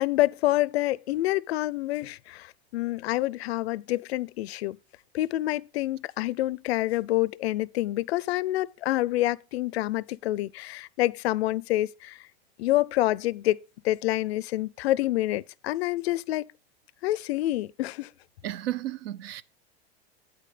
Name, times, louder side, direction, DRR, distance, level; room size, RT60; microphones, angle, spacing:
voice 1, 0.0-4.8 5.1-12.2 12.6-13.6 13.8-16.4 17.0-18.1, left 16 dB, 75° left, 0.5 m, -27 dB
voice 2, 18.4-19.4, right 13 dB, 70° right, 0.7 m, -33 dB
9.1 x 5.1 x 4.9 m
supercardioid pair, 130°, 32 cm